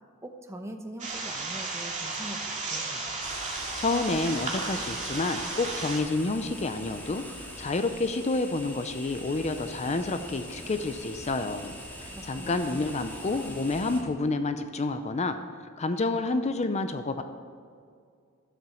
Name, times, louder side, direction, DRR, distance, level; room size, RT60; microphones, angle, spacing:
voice 1, 0.2-3.1 12.1-12.9, right 1 dB, 15° right, 6 dB, 0.9 m, -43 dB
sound 1, 1.0-6.0, right 3 dB, 35° right, 2.3 m, -34 dB
sound 2, 3.2-14.0, equal, 10° left, 2.0 m, -43 dB
voice 2, 3.8-7.2 7.6-11.7 12.0-15.4 15.8-17.2, left 3 dB, 35° left, 9 dB, 0.5 m, -29 dB
12.5 x 7.7 x 6.9 m, 2.2 s
head